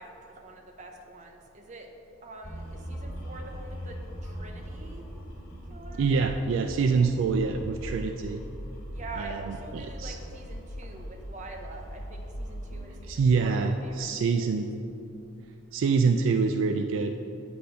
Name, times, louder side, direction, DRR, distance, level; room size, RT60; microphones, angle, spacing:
voice 1, 0.0-1.9 2.2-5.1 5.7-6.1 8.9-14.6, right 2 dB, 35° right, 3 dB, 0.7 m, -45 dB
sound 1, 2.4-13.2, equal, 85° left, 1.5 m, -40 dB
voice 2, 6.0-8.4 9.2-10.2 13.1-14.7 15.7-17.1, right 4 dB, 65° right, 6 dB, 0.3 m, -26 dB
8.2 x 4.2 x 5.5 m, 2.8 s
head